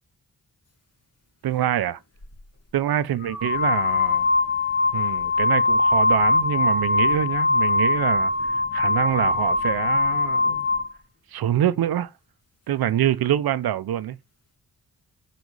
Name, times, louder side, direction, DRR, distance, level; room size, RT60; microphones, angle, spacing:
voice 1, 1.4-2.0 2.7-4.3 4.9-10.7 11.3-12.1 12.7-14.2, right 11 dB, 85° right, 0.7 m, -25 dB
sound 1, 2.2-2.4 3.2-10.9, left 3 dB, 40° left, 2.4 m, -22 dB
8.1 x 4.2 x 4.8 m
cardioid pair, 70°, 36 cm